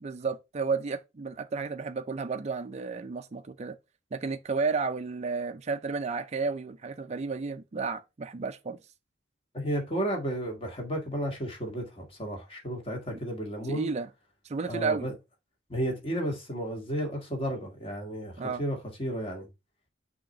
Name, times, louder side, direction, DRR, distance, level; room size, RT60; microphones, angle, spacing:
voice 1, 0.0-3.8 4.1-8.8 13.7-14.1 14.5-15.1 18.4-18.6, right 4 dB, 35° right, 0.4 m, -32 dB
voice 2, 9.5-13.9 14.7-15.1 15.7-19.5, equal, 30° left, 1.9 m, -33 dB
6.3 x 2.8 x 5.6 m
head